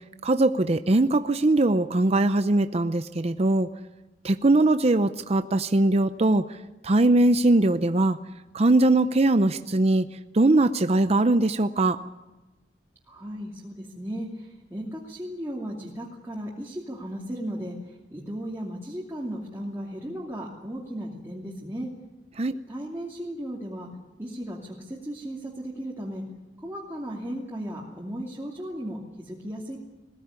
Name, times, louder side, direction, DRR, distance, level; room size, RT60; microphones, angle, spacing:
voice 1, 0.2-3.7 4.2-6.4 6.8-8.2 8.5-10.0 10.3-12.0 22.4-22.5, right 2 dB, 35° right, 10 dB, 0.6 m, -21 dB
voice 2, 13.1-14.3 14.7-17.8 18.1-21.9 22.7-23.9 24.2-26.2 26.6-29.8, equal, 15° right, -5 dB, 2.7 m, -35 dB
21.0 x 16.5 x 9.7 m, 1.1 s
head